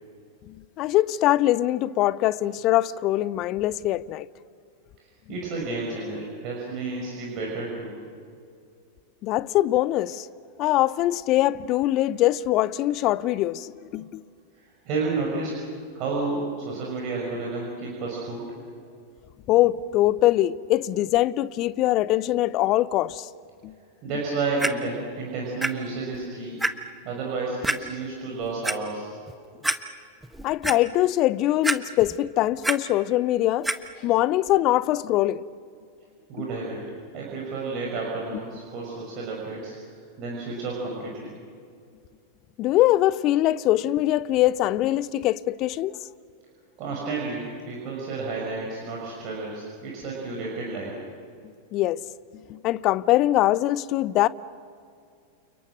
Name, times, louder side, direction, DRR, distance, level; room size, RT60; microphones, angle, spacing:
voice 1, 0.8-4.3 9.2-10.3 10.6-14.2 19.5-23.3 23.6-23.7 30.4-33.7 34.0-35.4 36.4-36.5 42.6-45.9 51.7-52.0 52.5-54.3, left 15 dB, 40° left, 0.7 m, -22 dB
voice 2, 5.3-8.0 14.5-15.5 15.9-18.5 24.0-26.6 27.0-29.1 36.3-36.8 37.1-41.3 46.8-51.0, right 3 dB, 40° right, 6.1 m, -31 dB
Clock, 24.6-24.7 25.6-25.7 26.1-26.2 26.6-26.7 27.6-27.8 28.4-28.7 29.3-29.4 29.6-29.8 30.2-30.8 31.6-32.2 32.4-32.8 33.6-33.8 34.5-34.6, right 1 dB, 5° right, 1.2 m, -25 dB
30.0 x 29.5 x 6.2 m
figure-of-eight pair, 90°, 0 cm